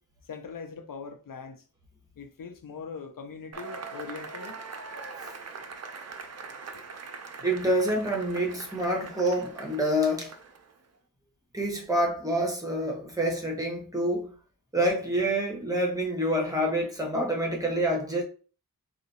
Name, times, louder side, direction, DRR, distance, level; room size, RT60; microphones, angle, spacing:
voice 1, 0.2-1.6 2.2-4.6, left 5 dB, 70° left, 0.5 m, -41 dB
Cheering / Applause / Crowd, 3.5-10.8, right 4 dB, 45° right, 0.5 m, -42 dB
voice 2, 7.4-10.3 11.5-14.3 14.7-18.2, right 1 dB, 10° right, 1.0 m, -27 dB
3.8 x 2.5 x 2.8 m
wide cardioid pair, 105°, 35 cm